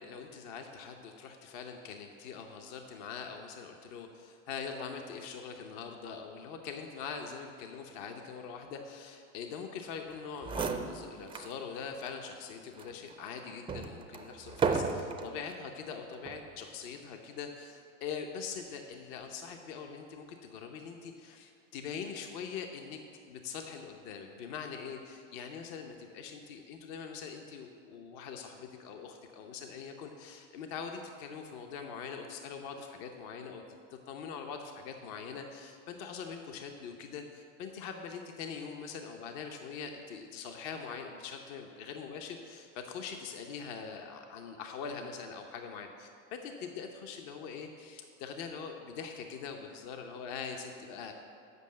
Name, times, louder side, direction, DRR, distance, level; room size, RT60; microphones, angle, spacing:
voice 1, 0.0-23.0 23.3-33.6 34.1-51.1, left 6 dB, 60° left, 4 dB, 0.9 m, -43 dB
sound 1, 10.1-10.2 10.4-11.6 12.0-12.1 12.8-15.4 16.1-16.5, right 5 dB, 15° right, 0.4 m, -34 dB
8.1 x 5.5 x 7.6 m, 2.4 s
supercardioid pair, 115°, 40 cm